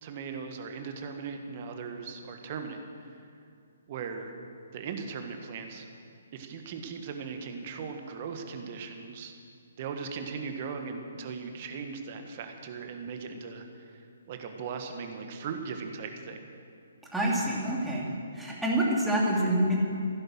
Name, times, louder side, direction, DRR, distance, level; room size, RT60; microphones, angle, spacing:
voice 1, 0.0-3.2 3.9-4.3 4.7-5.9 6.3-9.3 9.8-16.4, right 5 dB, 40° right, 5 dB, 1.6 m, -38 dB
voice 2, 17.1-18.1 18.3-19.8, right 1 dB, 5° right, -5 dB, 2.7 m, -26 dB
16.0 x 10.5 x 6.4 m, 2.4 s
figure-of-eight pair, 130°, 0 cm